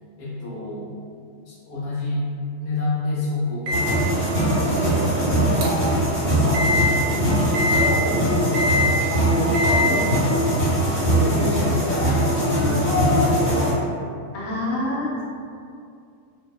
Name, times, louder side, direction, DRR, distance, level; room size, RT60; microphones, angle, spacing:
voice 1, 0.2-1.0 1.5-2.2 2.6-5.0 5.9-9.6 9.9-10.3 11.0-13.6, left 2 dB, 75° left, -7 dB, 1.1 m, -30 dB
sound 1, 3.7-13.7, equal, 30° left, 1.3 m, -21 dB
Microwave oven, 3.7-6.0 6.5-6.9 7.5-7.9 8.5-8.9 9.5-9.9, left 2 dB, 85° right, 1.1 m, -24 dB
voice 2, 5.0-5.4 9.8-10.0 12.5-12.7 14.3-15.1, left 1 dB, 60° left, -7 dB, 0.7 m, -28 dB
2.7 x 2.1 x 2.2 m, 2.4 s
omnidirectional pair, 1.6 m